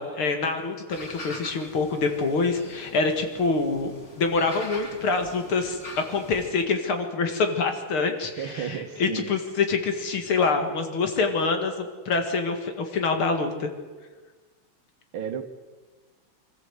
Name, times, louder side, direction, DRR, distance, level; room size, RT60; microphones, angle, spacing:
voice 1, 0.0-13.7, left 4 dB, 80° left, 5 dB, 2.8 m, -26 dB
sound 1, 0.9-6.5, left 1 dB, 35° left, 3.1 m, -43 dB
voice 2, 8.4-9.4 15.1-15.4, right 8 dB, 75° right, 7 dB, 2.2 m, -33 dB
25.0 x 13.5 x 8.0 m, 1.4 s
omnidirectional pair, 2.3 m